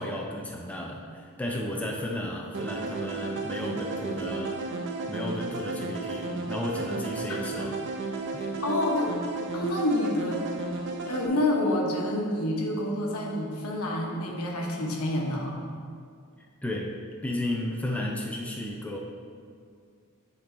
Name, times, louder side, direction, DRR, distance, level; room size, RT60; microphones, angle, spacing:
voice 1, 0.0-4.8 5.1-7.8 8.3-8.5 16.6-16.9 17.2-19.0, left 1 dB, 5° left, -1 dB, 0.5 m, -33 dB
sound 1, 2.5-11.3, right 3 dB, 55° right, 0.7 m, -33 dB
voice 2, 8.6-9.2 9.5-10.5 11.1-15.6, left 1 dB, 75° left, -1 dB, 1.1 m, -28 dB
9.8 x 3.9 x 3.8 m, 2.3 s
head